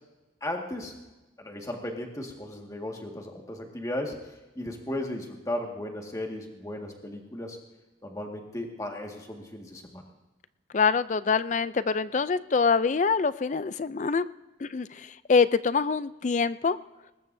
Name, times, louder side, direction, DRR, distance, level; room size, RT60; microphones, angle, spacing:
voice 1, 0.4-1.0 1.4-4.2 4.6-7.6 8.0-10.0, left 1 dB, 20° left, 1 dB, 1.8 m, -35 dB
voice 2, 10.7-14.3 14.6-16.8, left 5 dB, 40° left, 15 dB, 0.4 m, -25 dB
21.0 x 19.5 x 2.7 m, 1.1 s
head